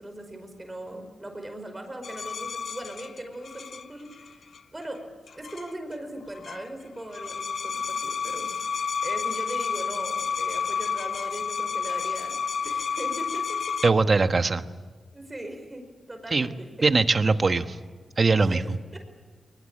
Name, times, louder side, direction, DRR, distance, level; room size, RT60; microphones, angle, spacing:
voice 1, 0.0-4.5 4.7-5.0 5.4-13.8 15.1-15.8 16.1-16.9 18.4-19.0, right 1 dB, 25° right, 5 dB, 5.2 m, -39 dB
sound 1, 2.0-4.6 5.3-5.9 6.2-6.7 7.0-13.9, left 6 dB, 65° left, 0.7 m, -31 dB
voice 2, 13.8-14.6 16.3-16.5 16.8-17.8 18.2-18.6, right 3 dB, 45° right, 9 dB, 1.3 m, -21 dB
21.0 x 20.5 x 8.8 m, 1.4 s
cardioid pair, 55°, 0 cm